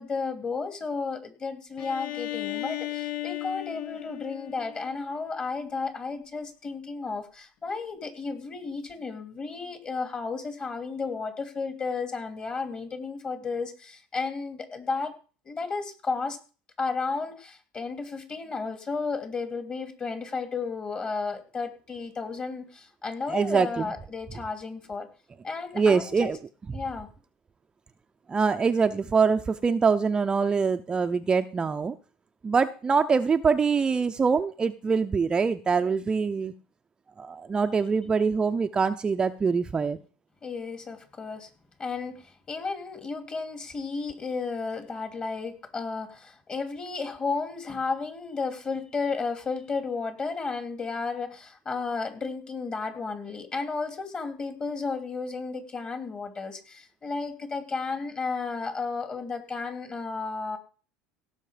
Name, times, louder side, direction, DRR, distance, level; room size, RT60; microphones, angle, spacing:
voice 1, 0.0-15.1 15.4-16.4 16.8-25.1 25.4-26.4 26.7-27.1 40.4-41.5 41.8-60.6, left 4 dB, 30° left, 8 dB, 2.8 m, -33 dB
Bowed string instrument, 1.8-5.5, left 16 dB, 60° left, 1.1 m, -36 dB
voice 2, 23.3-23.9 25.7-26.4 28.3-31.9 32.4-36.5 37.2-40.0, right 5 dB, 20° right, 7 dB, 0.6 m, -24 dB
17.0 x 6.4 x 5.1 m, 0.36 s
supercardioid pair, 110°, 4 cm